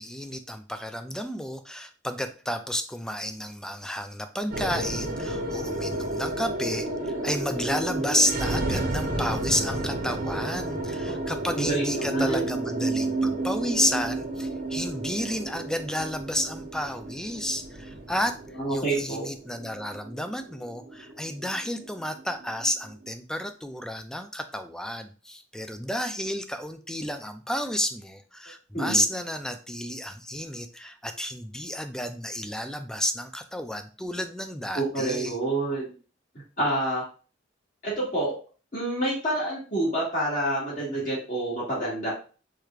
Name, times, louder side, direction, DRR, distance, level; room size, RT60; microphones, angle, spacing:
voice 1, 0.0-18.4 18.7-35.4, equal, 5° left, 8 dB, 0.4 m, -31 dB
sound 1, 4.5-22.9, right 2 dB, 50° right, 0.8 m, -31 dB
voice 2, 11.6-12.5 18.6-19.3 28.7-29.0 34.7-35.9 36.6-37.0 37.8-38.3 38.7-42.1, right 1 dB, 45° left, -6 dB, 2.0 m, -28 dB
4.9 x 4.4 x 2.4 m, 0.37 s
head